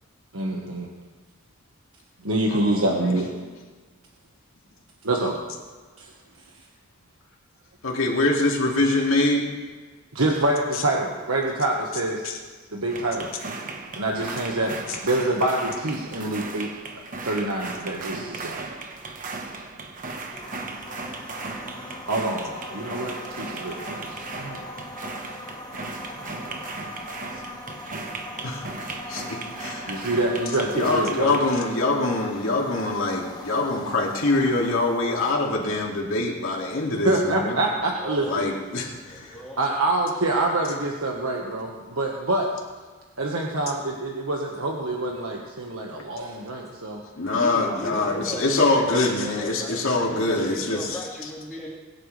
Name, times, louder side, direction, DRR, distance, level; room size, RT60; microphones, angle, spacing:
voice 1, 0.3-0.9 2.2-3.3 5.0-5.4 10.1-12.3 12.7-13.3 14.0-14.7 15.0-16.7 17.2-18.6 22.1-24.6 25.7-25.8 26.4-26.6 29.9-31.3 37.0-38.5 39.6-42.5 43.2-47.0 47.7-47.8, right 2 dB, 85° right, -1 dB, 1.4 m, -26 dB
voice 2, 2.5-3.2 7.8-9.6 12.2-12.4 28.4-30.1 30.7-37.6 38.3-39.4 47.1-51.0, left 2 dB, 75° left, -1 dB, 2.4 m, -24 dB
sound 1, 12.9-31.4, right 3 dB, 40° right, 1.2 m, -36 dB
sound 2, 20.3-35.4, left 2 dB, 20° left, 1.3 m, -40 dB
voice 3, 37.9-38.4 39.0-39.6 47.3-51.7, equal, ahead, -7 dB, 2.1 m, -37 dB
22.0 x 10.5 x 3.3 m, 1.4 s
head